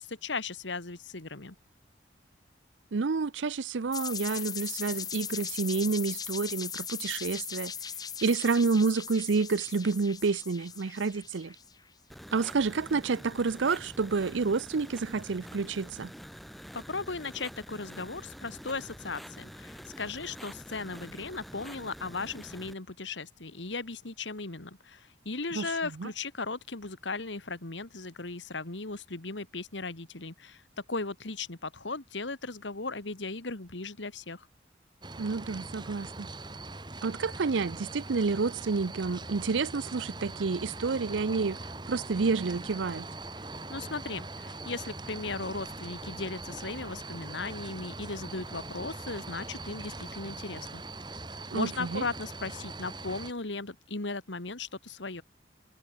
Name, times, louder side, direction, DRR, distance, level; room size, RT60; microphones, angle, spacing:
voice 1, 0.0-1.6 16.7-30.6 30.9-34.5 43.7-50.8 51.5-55.2, left 3 dB, 85° left, 2.0 m, -37 dB
voice 2, 2.9-7.7 8.2-11.6 12.3-16.1 25.5-25.7 26.0-26.1 35.2-36.3 37.0-41.6 41.9-43.1 51.5-52.0, right 4 dB, 85° right, 0.6 m, -29 dB
sound 1, 3.9-11.7, left 7 dB, 20° left, 1.6 m, -39 dB
sound 2, 12.1-22.7, equal, ahead, 5.0 m, -47 dB
sound 3, 35.0-53.3, right 2 dB, 25° right, 2.1 m, -42 dB
head